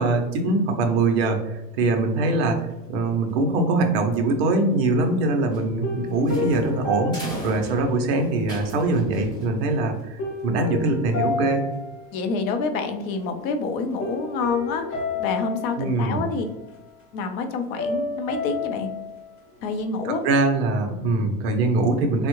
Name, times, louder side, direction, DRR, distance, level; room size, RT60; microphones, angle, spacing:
voice 1, 0.0-2.6 2.9-11.6 15.8-16.2 20.0-22.3, right 2 dB, 40° right, 4 dB, 0.5 m, -22 dB
sound 1, 4.7-5.4 5.8-8.5 10.2-12.7 13.0-13.4 14.0-16.8 17.8-19.2, left 4 dB, 35° left, 1.0 m, -31 dB
sound 2, 5.5-10.0, equal, 10° left, 0.6 m, -37 dB
voice 2, 12.1-16.4 17.1-18.9 19.6-20.2, left 4 dB, 55° left, 6 dB, 0.6 m, -27 dB
3.5 x 2.1 x 2.9 m, 0.98 s
supercardioid pair, 135°, 50 cm